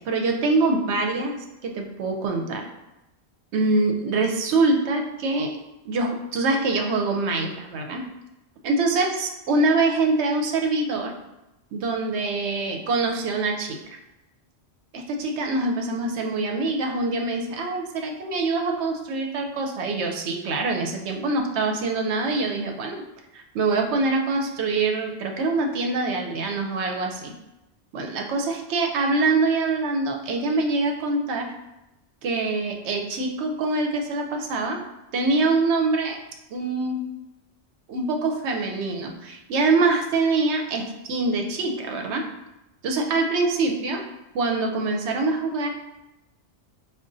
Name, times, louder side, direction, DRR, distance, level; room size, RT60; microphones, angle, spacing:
voice 1, 0.1-1.4 1.6-2.6 3.5-5.5 5.8-8.0 8.6-11.1 11.7-13.8 14.9-23.0 23.3-27.3 27.9-31.5 32.2-34.8 35.1-36.2 36.5-37.1 37.9-42.2 42.8-44.0 44.3-45.7, right 3 dB, 80° right, 3 dB, 0.9 m, -24 dB
4.9 x 2.3 x 2.5 m, 0.95 s
omnidirectional pair, 1.1 m